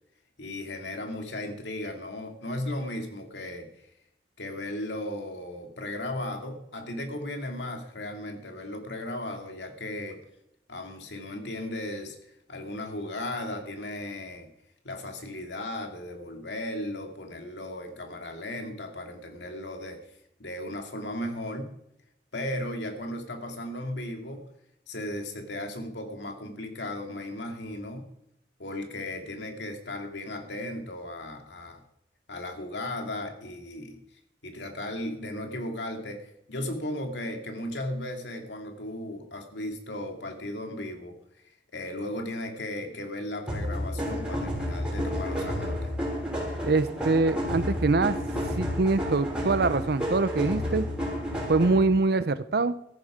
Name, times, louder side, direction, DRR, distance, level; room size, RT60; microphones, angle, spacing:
voice 1, 0.4-3.7 4.4-10.2 10.7-14.5 14.8-20.0 20.4-21.7 22.3-24.4 24.9-28.1 28.6-31.8 32.3-34.0 34.4-41.2 41.7-45.9 51.3-51.5, left 1 dB, 80° left, 4 dB, 2.4 m, -36 dB
sound 1, 43.5-51.9, equal, 5° right, 6.2 m, -31 dB
voice 2, 46.6-48.2 48.6-50.8 51.5-52.7, right 3 dB, 60° right, 14 dB, 0.6 m, -24 dB
14.0 x 11.0 x 5.0 m, 0.78 s
head